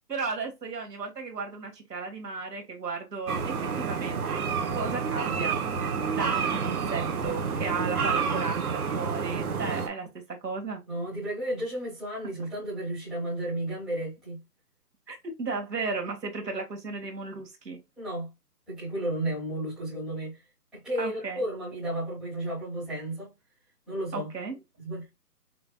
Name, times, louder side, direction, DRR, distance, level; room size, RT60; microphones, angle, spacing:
voice 1, 0.1-4.4 4.7-5.6 6.1-10.8 15.1-17.8 21.0-21.4 24.1-24.6, right 4 dB, 90° right, 1.9 m, -35 dB
sound 1, 3.3-9.9, right 6 dB, 65° right, 1.0 m, -29 dB
voice 2, 10.9-14.4 16.4-16.5 18.0-18.3 18.7-20.4 20.7-23.3 23.9-24.3 24.8-25.0, right 1 dB, ahead, 1.3 m, -33 dB
5.7 x 2.5 x 2.3 m
hypercardioid pair, 165°, 48 cm